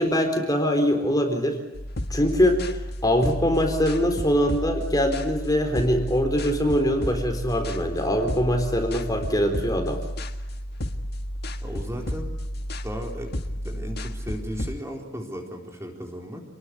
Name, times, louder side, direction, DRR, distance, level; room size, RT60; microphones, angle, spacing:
voice 1, 0.0-1.6 2.1-2.7 3.0-10.0, equal, 20° left, 5 dB, 4.0 m, -23 dB
sound 1, 1.7-14.8, equal, 55° left, 1.8 m, -32 dB
voice 2, 11.6-12.3 12.8-13.3 13.6-16.4, equal, 15° right, 1 dB, 4.3 m, -35 dB
29.0 x 21.0 x 9.8 m, 0.98 s
head